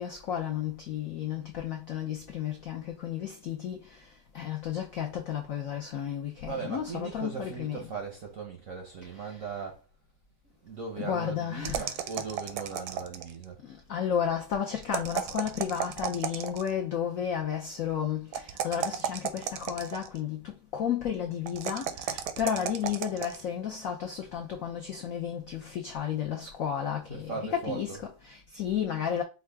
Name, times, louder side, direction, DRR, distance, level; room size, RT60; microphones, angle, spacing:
voice 1, 0.0-3.8 4.3-7.8 9.2-9.3 11.0-12.0 13.6-28.0 28.2-29.2, left 9 dB, 75° left, 0.7 m, -32 dB
voice 2, 6.5-9.8 10.6-13.6 27.1-28.1, right 5 dB, 65° right, 0.8 m, -38 dB
sound 1, 11.6-13.4 14.8-16.8 18.3-20.2 21.5-23.4, right 9 dB, 80° right, 1.4 m, -34 dB
5.4 x 2.4 x 3.3 m
omnidirectional pair, 2.2 m